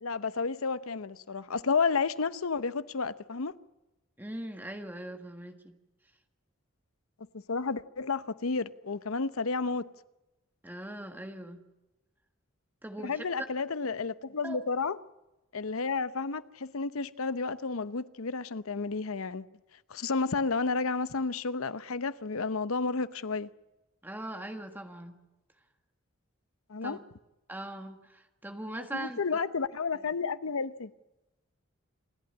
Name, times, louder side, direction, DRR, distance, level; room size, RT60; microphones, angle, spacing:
voice 1, 0.0-3.5 7.5-9.9 13.0-15.0 15.5-19.5 19.9-23.5 26.7-27.0 28.9-30.9, left 4 dB, 85° left, 0.8 m, -31 dB
voice 2, 4.2-5.6 10.6-11.6 12.8-13.2 14.4-14.6 24.0-25.1 26.8-27.0 27.5-29.2 29.9-30.0, right 1 dB, 10° right, 1.7 m, -40 dB
28.0 x 11.5 x 9.7 m
head